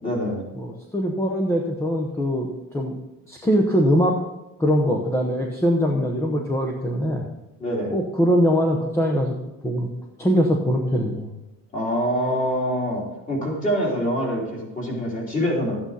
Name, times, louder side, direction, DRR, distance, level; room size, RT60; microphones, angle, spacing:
voice 1, 0.0-0.4 7.6-7.9 11.7-15.8, equal, 25° left, -3 dB, 3.4 m, -25 dB
voice 2, 0.6-2.5 2.7-2.9 3.3-4.2 4.6-7.2 7.9-9.3 9.6-9.9 10.2-11.3, equal, 10° left, 0 dB, 0.9 m, -22 dB
12.5 x 8.9 x 4.1 m, 0.96 s
cardioid pair, 175°, 33 cm